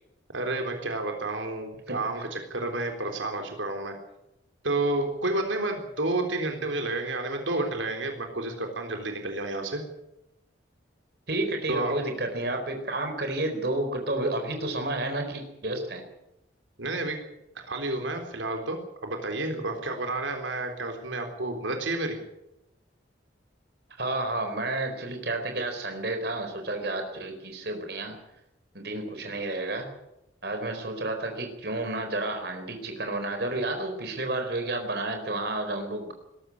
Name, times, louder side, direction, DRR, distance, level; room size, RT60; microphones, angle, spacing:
voice 1, 0.3-4.0 4.6-9.8 11.7-12.0 16.8-17.2 17.6-22.2, right 2 dB, 90° right, 4 dB, 3.8 m, -30 dB
voice 2, 11.3-16.0 24.0-28.2 28.7-29.9 30.4-36.1, right 2 dB, 55° right, 5 dB, 4.4 m, -31 dB
21.0 x 14.0 x 9.6 m, 0.88 s
head